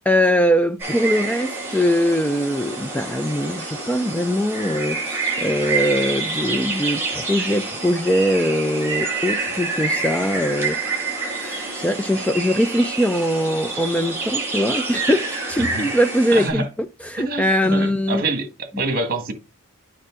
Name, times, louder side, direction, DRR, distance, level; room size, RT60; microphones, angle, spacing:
voice 1, 0.0-11.1 11.4-18.2, equal, 5° left, 0.3 m, -22 dB
sound 1, 0.8-16.5, right 3 dB, 10° right, 5.5 m, -27 dB
voice 2, 15.6-15.9 16.3-16.7 17.2-19.3, right 3 dB, 45° right, 1.6 m, -26 dB
9.1 x 5.8 x 3.7 m
head